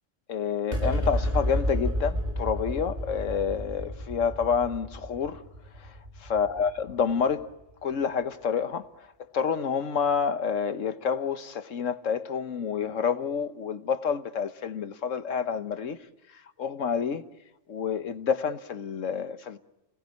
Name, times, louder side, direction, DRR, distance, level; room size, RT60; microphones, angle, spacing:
voice 1, 0.3-5.4 5.8-5.9 6.3-7.5 7.8-8.9 9.3-16.0 16.6-17.2 17.7-19.6, left 6 dB, 85° left, 1.5 m, -28 dB
sound 1, 0.7-7.4, equal, 45° right, 4.4 m, -31 dB
28.5 x 19.5 x 9.5 m
omnidirectional pair, 1.3 m